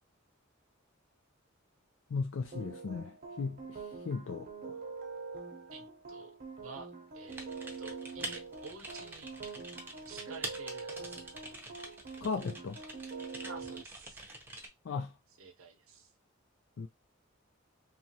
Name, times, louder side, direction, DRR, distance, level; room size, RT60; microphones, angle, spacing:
voice 1, 2.1-4.8 12.2-12.8 14.8-15.1 16.8-16.9, left 4 dB, 65° left, 0.4 m, -37 dB
sound 1, 2.5-13.8, right 4 dB, 45° right, 0.7 m, -45 dB
voice 2, 5.7-6.4 6.6-7.5 7.8-9.3 10.1-11.3 13.4-14.2 15.4-16.1, right 4 dB, 80° right, 0.7 m, -50 dB
Typing, 7.3-14.7, right 2 dB, 10° right, 0.6 m, -46 dB
3.0 x 2.4 x 2.7 m
head